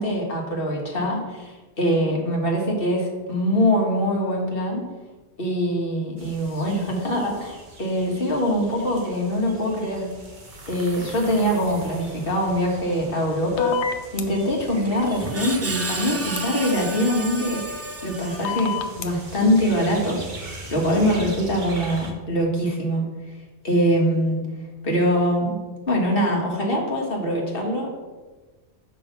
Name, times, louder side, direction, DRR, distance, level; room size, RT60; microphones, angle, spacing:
voice 1, 0.0-4.9 5.4-10.1 10.7-13.8 14.1-17.6 18.0-20.2 20.7-23.0 23.6-24.4 24.8-25.6 25.9-27.9, equal, 55° left, 0 dB, 1.7 m, -23 dB
sound 1, 6.2-22.1, right 2 dB, 45° right, 1.3 m, -41 dB
sound 2, 13.6-14.2 16.4-16.5 18.4-19.1, left 6 dB, 85° left, 1.0 m, -25 dB
Screech, 14.6-18.9, right 2 dB, 25° right, 0.3 m, -32 dB
6.4 x 5.4 x 5.8 m, 1.3 s
omnidirectional pair, 1.1 m